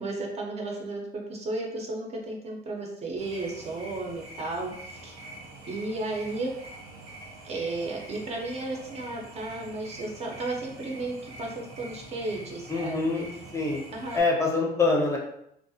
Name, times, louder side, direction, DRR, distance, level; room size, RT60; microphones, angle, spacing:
voice 1, 0.0-5.2 5.7-6.5 7.4-13.2 13.9-14.2, right 2 dB, 40° right, 0 dB, 0.5 m, -34 dB
sound 1, 3.2-14.2, right 1 dB, 80° right, 0.7 m, -45 dB
voice 2, 12.7-13.8 14.1-15.2, left 3 dB, 15° left, -2 dB, 0.5 m, -25 dB
2.3 x 2.0 x 2.6 m, 0.75 s
cardioid pair, 110°, 17 cm